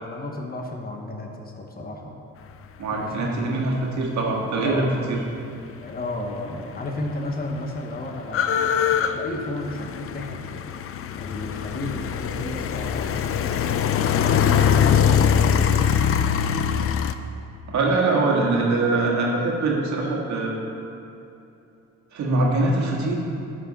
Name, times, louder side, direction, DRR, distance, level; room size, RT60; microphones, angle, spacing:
voice 1, 0.0-2.2 2.9-3.3 4.6-5.0 5.8-10.9 11.2-16.1, left 2 dB, 30° left, 1 dB, 1.2 m, -33 dB
voice 2, 2.8-5.2 17.7-20.5 22.1-23.2, right 2 dB, 70° right, -2 dB, 1.7 m, -23 dB
sound 1, 6.5-6.6 6.8-17.1, left 8 dB, 50° left, 0.5 m, -22 dB
10.5 x 6.2 x 4.1 m, 2.8 s
cardioid pair, 90°, 30 cm